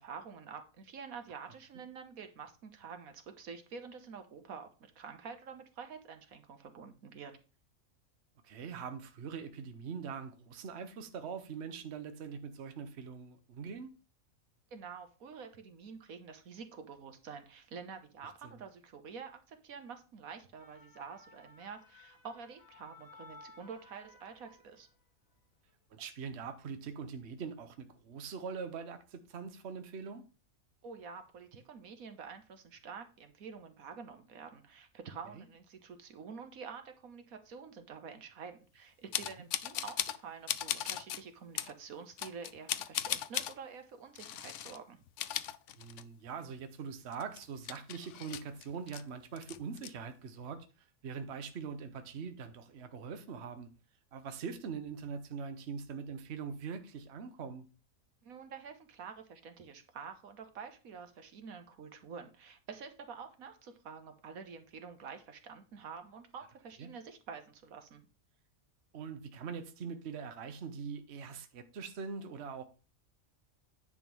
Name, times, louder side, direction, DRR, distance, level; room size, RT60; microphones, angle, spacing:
voice 1, 0.0-7.3 14.7-24.9 30.8-45.0 58.2-68.0, right 6 dB, 80° right, 1.5 m, -48 dB
voice 2, 8.4-13.9 18.4-18.5 25.9-30.2 35.3-35.4 45.8-50.7 51.0-53.7 54.1-57.6 66.8-66.9 68.9-72.6, right 6 dB, 55° right, 1.1 m, -42 dB
sound 1, 20.3-25.1 25.5-25.7, left 3 dB, 30° left, 1.3 m, -58 dB
sound 2, 39.1-40.2 40.5-41.2 41.6-41.7 42.2-43.5 44.1-44.8 45.1-46.3 46.6-46.7 47.1-49.0 49.4-49.9, left 11 dB, 70° left, 0.8 m, -37 dB
9.9 x 3.6 x 6.0 m
omnidirectional pair, 1.5 m